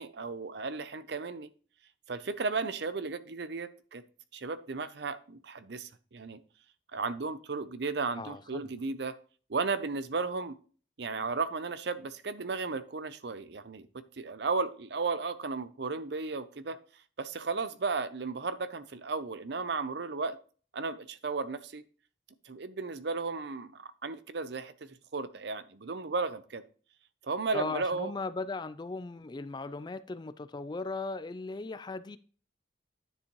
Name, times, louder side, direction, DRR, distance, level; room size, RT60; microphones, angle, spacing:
voice 1, 0.0-1.5 2.1-4.0 4.3-6.4 6.9-9.2 9.5-10.6 11.0-16.8 17.2-20.4 20.7-21.8 22.4-26.6 27.2-28.1, right 4 dB, 60° right, 0.6 m, -34 dB
voice 2, 8.2-8.6 27.5-32.2, left 3 dB, 25° left, 0.3 m, -37 dB
9.9 x 7.0 x 3.1 m
head